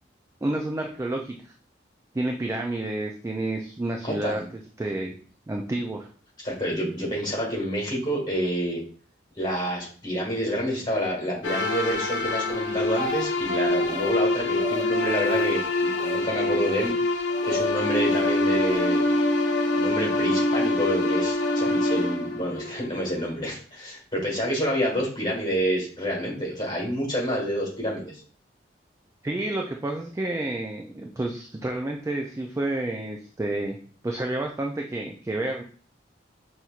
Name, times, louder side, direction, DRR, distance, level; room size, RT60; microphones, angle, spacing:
voice 1, 0.4-1.4 2.1-4.4 4.8-5.1 5.5-6.1 29.2-33.8 34.0-35.6, right 2 dB, 15° right, 2 dB, 0.3 m, -29 dB
voice 2, 6.4-8.8 9.4-16.9 17.4-19.0 19.7-28.2, equal, 25° left, -4 dB, 1.6 m, -28 dB
sound 1, 11.4-23.2, left 2 dB, 70° left, 0.7 m, -25 dB
Speech, 12.5-13.5 13.7-14.1 14.5-14.9 15.2-15.5 15.9-16.2 16.6-16.9 17.3-17.7 18.1-18.9 19.7-19.9, equal, 55° right, 0.6 m, -36 dB
5.9 x 2.7 x 2.4 m, 0.43 s
head